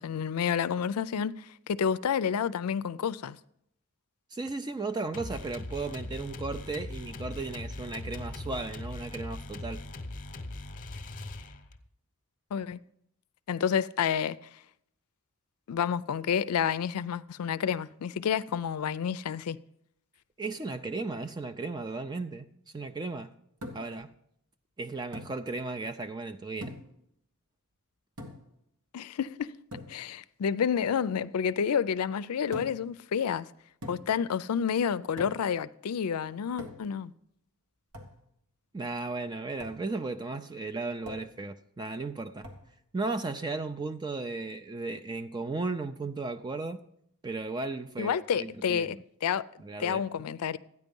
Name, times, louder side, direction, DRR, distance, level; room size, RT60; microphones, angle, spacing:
voice 1, 0.0-3.4 12.5-12.8 13.5-14.4 15.7-19.6 28.9-29.5 29.9-33.5 33.9-37.1 48.0-49.5 49.8-50.6, left 7 dB, 85° left, 0.4 m, -29 dB
voice 2, 4.3-9.8 20.4-22.5 22.7-23.3 23.7-24.1 24.8-26.7 38.7-42.5 42.9-46.8 47.2-48.9 49.6-50.0, right 3 dB, 20° right, 0.4 m, -35 dB
sound 1, 5.1-11.9, left 2 dB, 35° left, 0.9 m, -40 dB
sound 2, 23.6-24.0 25.1-25.4 26.6-27.0 28.2-28.6 29.7-30.0 32.5-32.9 33.8-34.2 35.2-35.5 36.6-37.0 37.9-38.2 39.6-39.8 41.0-41.4 42.4-42.7, left 1 dB, 90° right, 1.7 m, -43 dB
13.0 x 9.5 x 5.3 m
head